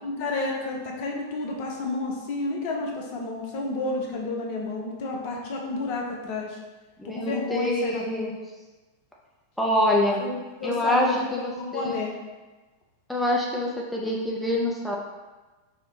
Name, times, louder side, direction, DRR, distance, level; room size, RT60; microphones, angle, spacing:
voice 1, 0.0-6.6 7.0-8.3 10.2-12.1, left 3 dB, 45° left, 0 dB, 0.6 m, -31 dB
voice 2, 7.0-8.3 9.6-10.2 10.6-12.0 13.1-14.9, left 1 dB, 5° left, -3 dB, 0.5 m, -25 dB
4.9 x 2.1 x 2.7 m, 1.2 s
figure-of-eight pair, 90°, 0 cm